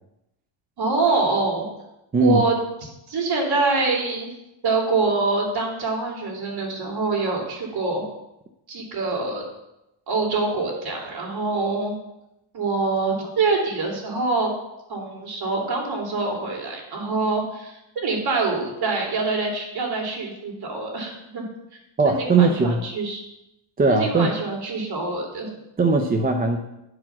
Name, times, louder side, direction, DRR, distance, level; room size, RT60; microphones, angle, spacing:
voice 1, 0.8-1.7 2.2-2.5 2.8-4.3 4.6-8.0 8.7-9.4 10.1-11.9 12.5-14.5 14.9-21.4 22.0-23.2 23.9-25.5, right 3 dB, 50° right, 0 dB, 2.9 m, -25 dB
voice 2, 22.0-22.8 23.8-24.3 25.8-26.6, right 3 dB, 20° right, 4 dB, 0.6 m, -19 dB
10.0 x 4.9 x 5.8 m, 0.89 s
cardioid pair, 125°, 49 cm